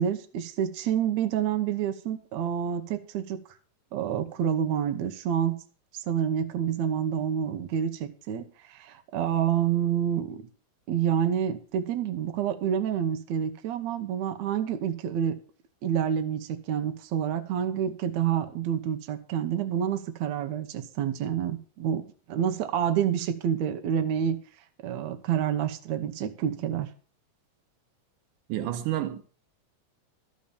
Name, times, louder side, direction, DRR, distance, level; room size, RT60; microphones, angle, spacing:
voice 1, 0.0-3.4 3.9-5.6 5.9-10.4 10.9-15.4 15.8-24.4 24.8-26.9, right 9 dB, 70° right, 2.0 m, -28 dB
voice 2, 28.5-29.2, right 13 dB, 85° right, 2.5 m, -29 dB
13.5 x 5.3 x 6.9 m
omnidirectional pair, 3.7 m